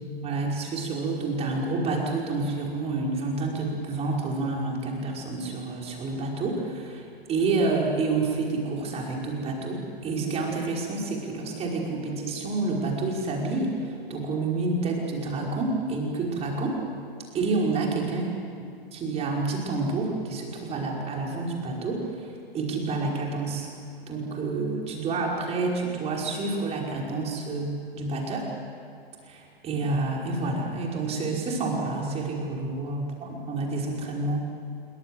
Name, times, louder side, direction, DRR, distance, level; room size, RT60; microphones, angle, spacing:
voice 1, 0.2-16.8 17.3-18.3 18.9-23.7 24.1-28.5 29.2-34.4, right 3 dB, 20° right, -1 dB, 5.3 m, -29 dB
26.5 x 23.5 x 7.9 m, 2.4 s
figure-of-eight pair, 110°, 30 cm